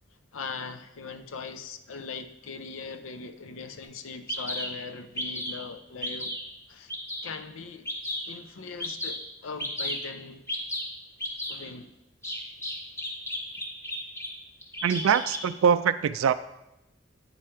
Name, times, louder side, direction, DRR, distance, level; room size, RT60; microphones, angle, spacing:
voice 1, 0.3-6.3 6.7-6.9 7.2-7.9 8.3-10.5 11.5-11.9, left 4 dB, 80° left, 9 dB, 0.5 m, -40 dB
Bird vocalization bird call bird song, 3.8-3.9 4.3-4.7 5.2-5.6 6.0-6.4 6.9-7.3 7.9-8.3 8.8-9.2 9.6-10.0 10.5-10.8 11.2-11.6 12.2-14.3 14.6-15.4, left 1 dB, 15° left, 1.1 m, -33 dB
voice 2, 14.8-16.3, right 7 dB, 90° right, 11 dB, 0.3 m, -23 dB
8.8 x 4.9 x 4.4 m, 0.90 s
head